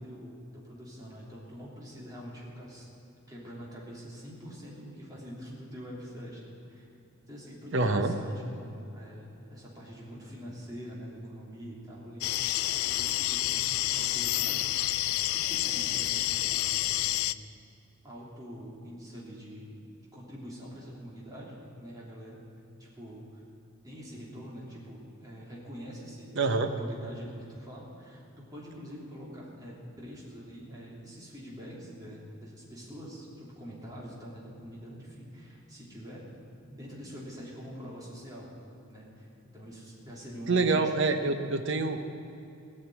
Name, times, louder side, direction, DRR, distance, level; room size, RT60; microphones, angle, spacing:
voice 1, 0.0-2.9 3.3-6.9 7.3-12.2 12.8-14.7 15.2-17.4 18.0-19.8 20.1-22.4 22.8-23.4 23.8-28.2 28.5-36.3 36.7-38.5 38.9-39.3 39.5-41.3, equal, 15° right, -6 dB, 3.2 m, -45 dB
voice 2, 7.7-8.1 26.4-26.7 40.5-42.1, right 3 dB, 55° right, 7 dB, 0.8 m, -26 dB
sound 1, 12.2-17.3, left 15 dB, 70° left, 0.3 m, -29 dB
17.5 x 6.5 x 9.4 m, 2.7 s
head